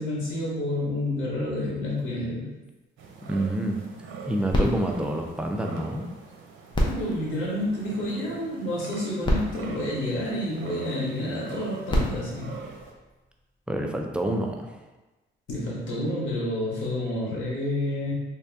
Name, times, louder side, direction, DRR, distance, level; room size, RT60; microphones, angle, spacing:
voice 1, 0.0-2.5 4.5-4.8 6.8-12.5 15.5-18.1, left 1 dB, 80° left, -6 dB, 1.5 m, -29 dB
sound 1, 3.0-12.9, right 4 dB, 80° right, 0.6 m, -44 dB
voice 2, 3.2-3.8 4.3-6.0 13.7-14.7, right 1 dB, 5° right, 2 dB, 0.5 m, -28 dB
sound 2, 4.5-6.1 6.7-8.3 8.9-9.0 9.2-10.8 11.6-13.5 14.2-14.3, left 1 dB, 25° left, 0.8 m, -30 dB
3.4 x 2.7 x 3.4 m, 1.1 s
cardioid pair, 90°, 20 cm